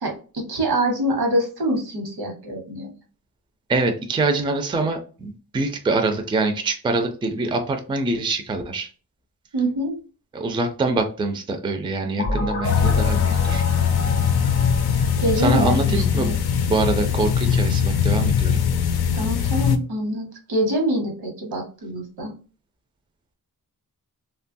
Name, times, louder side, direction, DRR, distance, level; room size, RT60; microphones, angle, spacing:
voice 1, 0.0-2.9 9.5-9.9 15.2-16.3 19.1-22.3, right 1 dB, 90° right, 1 dB, 1.0 m, -25 dB
voice 2, 3.7-8.9 10.3-13.6 15.4-16.3 16.7-18.6, right 3 dB, 15° right, 5 dB, 0.3 m, -24 dB
sound 1, 12.2-16.9, left 2 dB, 35° left, 0.5 m, -30 dB
sound 2, 12.6-19.8, left 7 dB, 85° left, 0.5 m, -21 dB
3.1 x 2.2 x 2.5 m, 0.38 s
wide cardioid pair, 150°, 37 cm